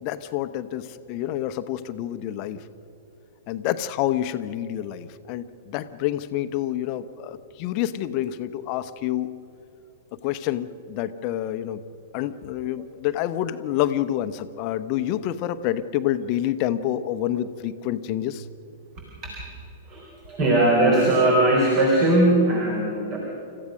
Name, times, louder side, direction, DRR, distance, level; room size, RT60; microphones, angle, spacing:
voice 1, 0.0-2.6 3.5-9.3 10.2-11.8 12.1-18.5, left 12 dB, 40° left, 11 dB, 1.0 m, -28 dB
voice 2, 19.9-23.2, right 1 dB, 35° right, 0 dB, 4.2 m, -20 dB
30.0 x 15.0 x 6.4 m, 2.9 s
figure-of-eight pair, 100°, 0 cm